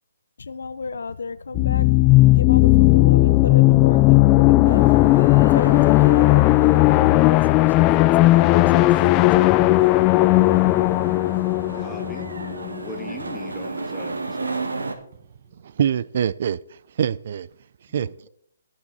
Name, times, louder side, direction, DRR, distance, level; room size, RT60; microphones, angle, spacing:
voice 1, 0.4-4.9 5.4-9.9, left 4 dB, 75° left, 0.7 m, -33 dB
sound 1, 1.5-13.1, left 19 dB, 25° left, 0.3 m, -16 dB
sound 2, 4.6-15.0, right 3 dB, 85° right, 1.7 m, -34 dB
voice 2, 11.7-12.3 12.6-14.5 17.9-18.1, left 2 dB, 5° left, 1.8 m, -40 dB
voice 3, 15.6-17.5 17.9-18.1, right 8 dB, 55° right, 0.4 m, -24 dB
16.5 x 6.0 x 4.1 m
hypercardioid pair, 140°, 0 cm